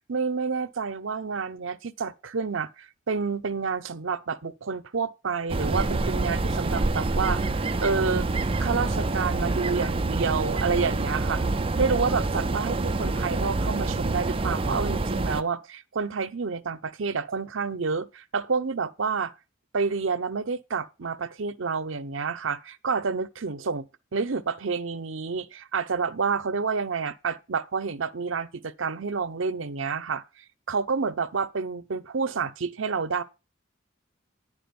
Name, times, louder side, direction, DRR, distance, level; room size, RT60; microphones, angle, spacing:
voice 1, 0.1-7.5 7.8-8.3 8.6-11.4 11.8-19.3 19.7-30.2 30.7-33.2, right 5 dB, 75° right, 0.7 m, -29 dB
sound 1, 5.5-15.4, right 2 dB, 30° right, 0.5 m, -27 dB
10.5 x 5.0 x 6.8 m
head